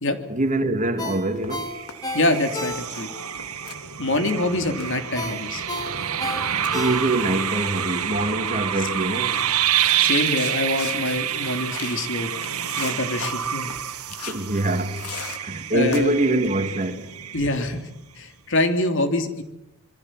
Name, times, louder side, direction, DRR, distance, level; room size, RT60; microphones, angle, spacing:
voice 1, 0.3-1.7 6.7-9.4 14.2-15.0 15.4-17.1, right 1 dB, 35° right, 2.4 m, -24 dB
Ringtone, 1.0-3.2 3.6-3.7 5.2-7.4 7.8-7.9, left 2 dB, 15° left, 3.6 m, -32 dB
sound 1, 1.4-2.4 2.7-3.1 3.4-5.0 5.2-12.2 12.4-13.3 13.7-13.8 14.1-15.4 15.9-16.1 16.4-16.8, left 6 dB, 90° left, 3.3 m, -39 dB
sound 2, 1.6-17.8, right 10 dB, 85° right, 1.8 m, -28 dB
voice 2, 2.1-3.1 4.0-5.7 10.0-12.3 12.8-13.7 15.7-16.1 17.3-17.9 18.2-19.4, left 2 dB, 60° left, 3.0 m, -25 dB
27.0 x 23.5 x 7.6 m
head